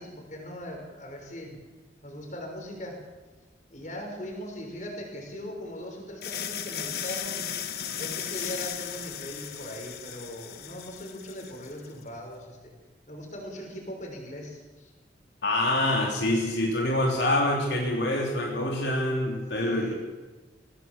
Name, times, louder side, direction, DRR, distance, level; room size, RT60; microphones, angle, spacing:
voice 1, 0.0-1.6 2.0-3.0 3.7-7.4 7.9-12.7 13.1-14.9 19.6-19.9, left 1 dB, 45° left, 2 dB, 6.0 m, -40 dB
sound 1, 6.2-11.9, left 8 dB, 60° left, 1.5 m, -36 dB
voice 2, 15.4-19.9, left 1 dB, 80° left, -1 dB, 3.6 m, -26 dB
23.0 x 18.5 x 7.5 m, 1.2 s
head